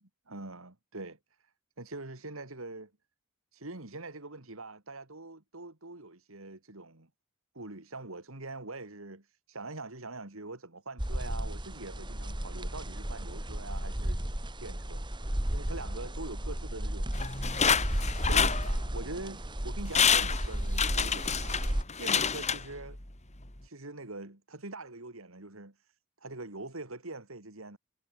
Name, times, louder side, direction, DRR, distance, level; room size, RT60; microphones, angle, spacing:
voice 1, 0.3-1.2 1.8-2.9 3.5-7.1 7.5-14.3 14.6-15.0 15.5-17.3 18.2-21.6 22.0-23.0 23.6-25.7 26.2-27.8, right 2 dB, 75° right, 3.0 m, -43 dB
sound 1, 11.0-21.8, equal, 20° right, 2.2 m, -34 dB
sound 2, 17.1-19.2 19.6-19.7 19.9-23.1 23.5-23.6, left 6 dB, 35° left, 3.1 m, -28 dB
head